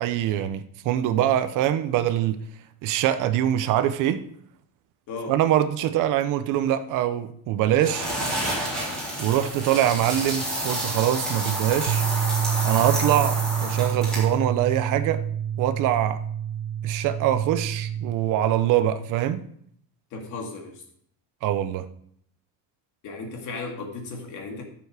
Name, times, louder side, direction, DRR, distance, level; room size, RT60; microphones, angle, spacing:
voice 1, 0.0-2.4 2.8-4.2 5.3-8.1 9.2-12.0 12.6-15.2 15.6-16.2 16.8-19.4 21.4-21.8, right 11 dB, 50° right, 0.8 m, -23 dB
voice 2, 5.1-5.4 20.1-20.8 23.0-24.6, left 3 dB, 45° left, 2.3 m, -35 dB
sound 1, 7.8-14.4, right 1 dB, ahead, 3.5 m, -29 dB
sound 2, 11.9-18.1, right 9 dB, 65° right, 1.1 m, -27 dB
11.0 x 7.2 x 4.9 m
cardioid pair, 170°, 42 cm